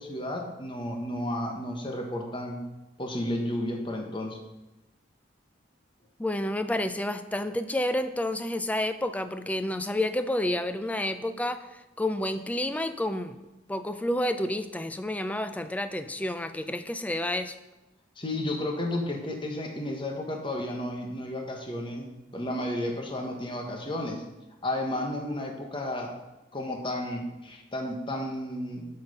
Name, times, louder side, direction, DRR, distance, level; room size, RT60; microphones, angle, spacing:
voice 1, 0.0-2.6 3.0-4.4 18.2-22.1 22.3-24.2 24.6-26.1 26.5-28.9, left 1 dB, 25° left, 2 dB, 1.2 m, -32 dB
voice 2, 6.2-13.4 13.7-17.6, left 1 dB, 10° left, 10 dB, 0.4 m, -30 dB
7.9 x 5.8 x 5.4 m, 1.0 s
head